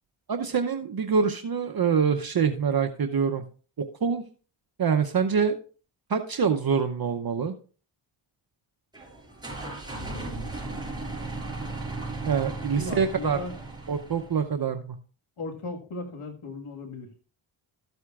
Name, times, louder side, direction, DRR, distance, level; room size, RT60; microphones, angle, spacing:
voice 1, 0.3-3.4 3.8-4.2 4.8-5.6 6.1-7.5 12.2-13.4 13.9-15.0, right 6 dB, 50° right, 6 dB, 0.8 m, -25 dB
sound 1, 8.9-14.5, right 2 dB, 10° right, 4.8 m, -36 dB
voice 2, 10.0-10.5 12.8-13.6 15.4-17.1, left 2 dB, 90° left, 3 dB, 1.8 m, -37 dB
13.5 x 8.0 x 2.4 m, 0.39 s
cardioid pair, 65°, 48 cm